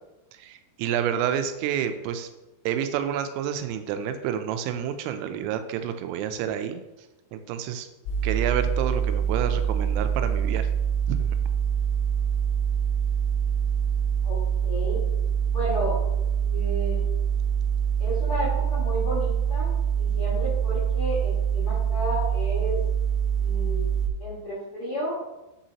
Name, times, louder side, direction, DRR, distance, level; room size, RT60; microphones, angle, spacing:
voice 1, 0.3-2.3 2.7-6.8 7.3-7.9 8.2-10.7 11.1-11.3, right 9 dB, 85° right, 9 dB, 3.2 m, -29 dB
sound 1, 8.1-24.1, right 8 dB, 90° left, 3.4 m, -25 dB
voice 2, 14.2-15.0 15.5-16.0 16.4-17.0 18.0-19.7 20.0-22.8 23.4-23.9 24.2-25.1, equal, 70° left, -8 dB, 1.3 m, -32 dB
7.6 x 5.6 x 2.9 m, 1.0 s
omnidirectional pair, 5.9 m